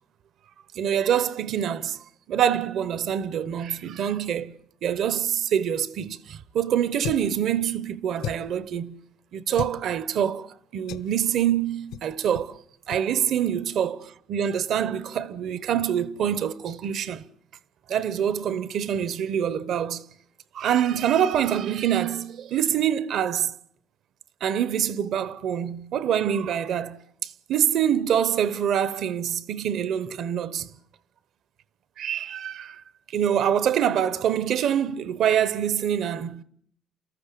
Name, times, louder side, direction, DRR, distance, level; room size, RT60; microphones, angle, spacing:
voice 1, 0.7-2.0 2.3-4.5 4.8-9.0 9.3-10.5 10.7-12.6 12.9-14.0 14.3-17.2 17.9-20.0 20.5-23.5 24.4-30.7 32.0-32.8 33.1-36.4, right 9 dB, 60° right, 0.9 m, -25 dB
sound 1, 7.0-7.4 8.2-8.6 9.5-9.8 10.9-11.1 11.9-12.1 12.3-12.5 12.9-13.0, left 11 dB, 85° left, 0.9 m, -35 dB
28.5 x 14.5 x 8.5 m
cardioid pair, 130°, 0 cm